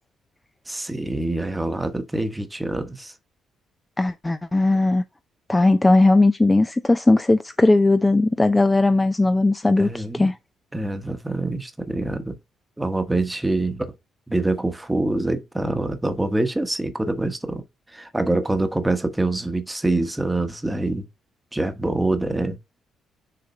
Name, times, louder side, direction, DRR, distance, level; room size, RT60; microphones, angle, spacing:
voice 1, 0.7-3.1 9.8-10.3 10.7-12.4 12.8-13.9 14.3-17.6 17.9-21.1 21.5-22.6, right 2 dB, 10° right, 1.1 m, -25 dB
voice 2, 4.0-5.0 5.5-10.4, left 2 dB, 15° left, 0.5 m, -18 dB
6.7 x 3.7 x 4.1 m
cardioid pair, 90°, 0 cm